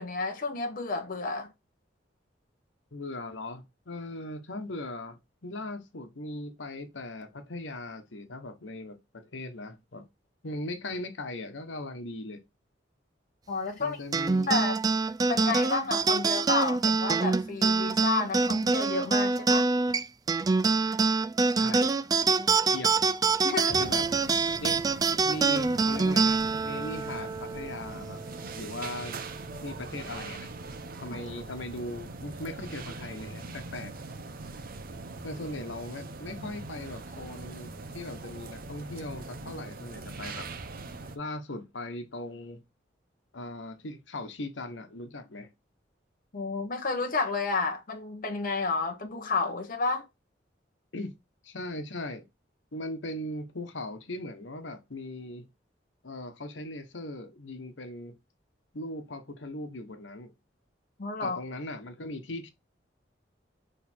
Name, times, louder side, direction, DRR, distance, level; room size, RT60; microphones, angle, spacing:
voice 1, 0.0-1.5 13.5-14.0 14.5-14.7 15.3-19.7 23.4-23.9 46.3-50.1 61.0-61.4, left 4 dB, 50° left, 0.8 m, -31 dB
voice 2, 2.9-10.0 10.4-12.4 13.8-14.6 21.5-21.9 22.6-22.9 23.8-24.1 24.6-24.8 25.3-28.2 28.6-29.2 29.6-30.5 31.0-33.9 35.2-40.5 41.1-42.6 43.3-45.5 50.9-51.1 51.4-52.2 52.7-55.5 56.0-58.1 58.7-60.3 61.2-62.5, left 1 dB, 80° left, 1.1 m, -39 dB
sound 1, 14.1-28.9, right 4 dB, 20° right, 0.3 m, -26 dB
sound 2, 23.7-41.2, right 3 dB, 50° right, 0.7 m, -42 dB
6.4 x 3.4 x 4.3 m
head